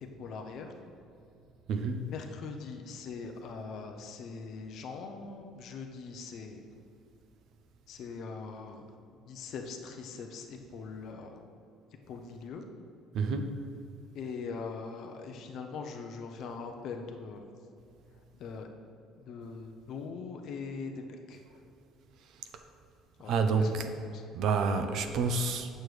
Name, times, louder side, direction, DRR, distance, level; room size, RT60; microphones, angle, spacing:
voice 1, 0.2-0.8 2.1-6.6 7.9-8.9 9.2-11.4 12.1-12.6 14.1-17.5 18.4-18.7 19.2-21.4 23.2-23.3 23.6-24.2, left 4 dB, 50° left, 4 dB, 0.5 m, -41 dB
voice 2, 1.7-2.0 13.1-13.6 23.3-23.9 24.3-25.7, right 4 dB, 50° right, 7 dB, 0.5 m, -28 dB
8.6 x 6.3 x 3.2 m, 2.6 s
cardioid pair, 175°, 0 cm